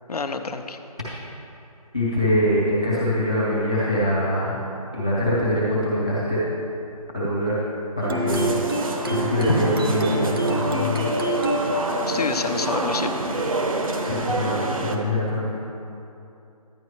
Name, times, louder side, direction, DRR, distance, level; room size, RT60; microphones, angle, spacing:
voice 1, 0.1-0.8 12.1-13.1, left 4 dB, 75° left, 7 dB, 0.7 m, -28 dB
voice 2, 1.9-4.6 4.9-6.4 7.1-7.5 8.0-8.6 9.0-11.1 14.0-15.5, equal, 10° left, -11 dB, 0.5 m, -23 dB
sound 1, 8.0-13.5, equal, 35° right, 0.7 m, -27 dB
sound 2, 8.3-15.0, right 2 dB, 60° right, 0.9 m, -28 dB
11.0 x 9.4 x 3.1 m, 2.7 s
figure-of-eight pair, 170°, 20 cm